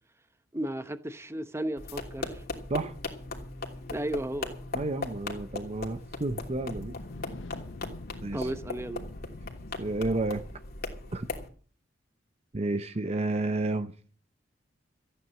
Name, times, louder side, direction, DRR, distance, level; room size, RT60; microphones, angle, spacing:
voice 1, 0.5-2.4 3.9-4.6 8.3-9.0, right 1 dB, 15° right, 1.0 m, -34 dB
sound 1, 1.8-11.5, left 2 dB, 55° left, 2.9 m, -39 dB
voice 2, 4.7-6.9 8.2-8.5 9.8-10.4 11.1-11.3 12.5-13.9, right 2 dB, 35° right, 0.7 m, -31 dB
sound 2, 6.4-11.2, left 3 dB, 75° left, 0.9 m, -47 dB
14.0 x 9.4 x 7.5 m
head